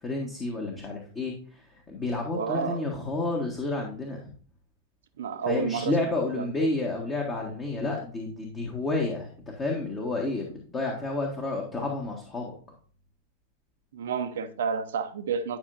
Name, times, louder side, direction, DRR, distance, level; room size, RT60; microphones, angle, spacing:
voice 1, 0.0-4.2 5.5-12.5, left 2 dB, 20° left, 1.5 m, -30 dB
voice 2, 2.3-2.9 5.2-6.0 6.3-6.7 13.9-15.6, right 6 dB, 60° right, 0.8 m, -30 dB
10.5 x 5.6 x 2.6 m
figure-of-eight pair, 90°, 0 cm